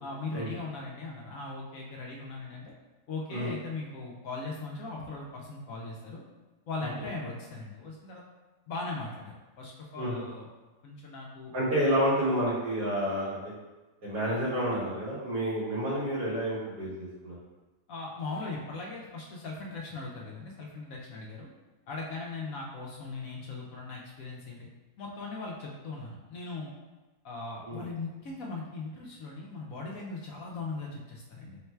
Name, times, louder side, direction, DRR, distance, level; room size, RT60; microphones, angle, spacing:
voice 1, 0.0-2.7 3.1-6.2 6.7-8.2 8.7-10.5 10.8-11.5 17.9-21.5 21.9-24.7 25.0-26.7 27.2-31.6, left 3 dB, 70° left, -2 dB, 0.9 m, -39 dB
voice 2, 11.5-13.5 14.0-17.4 27.6-27.8, equal, 80° right, -8 dB, 2.0 m, -29 dB
3.9 x 2.2 x 4.3 m, 1.2 s
omnidirectional pair, 1.8 m